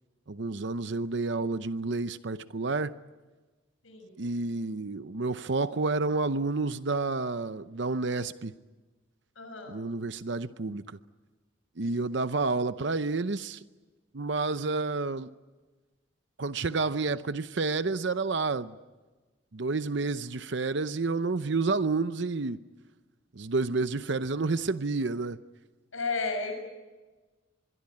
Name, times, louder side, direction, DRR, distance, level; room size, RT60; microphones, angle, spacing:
voice 1, 0.3-2.9 4.2-8.5 9.7-11.0 11.8-13.6 14.1-15.3 16.4-18.7 19.5-22.6 23.3-25.4, right 3 dB, 60° right, 0.7 m, -30 dB
voice 2, 9.3-9.7 25.9-26.5, left 3 dB, 80° left, 6.8 m, -32 dB
25.5 x 22.5 x 8.6 m
head